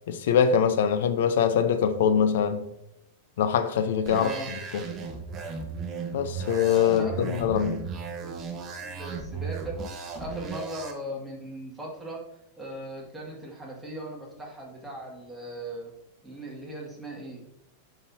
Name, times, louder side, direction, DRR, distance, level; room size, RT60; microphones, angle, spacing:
voice 1, 0.1-2.6 3.4-4.3 4.7-4.8 6.1-7.8, left 7 dB, 75° left, 10 dB, 0.6 m, -23 dB
sound 1, 4.1-10.9, right 5 dB, 25° right, 1.1 m, -36 dB
voice 2, 4.2-4.5 6.6-7.9 8.2-8.3 8.9-12.2 12.6-15.9 16.2-17.4, right 1 dB, 5° right, -4 dB, 2.1 m, -39 dB
7.1 x 5.8 x 2.8 m, 0.85 s
supercardioid pair, 140°, 0 cm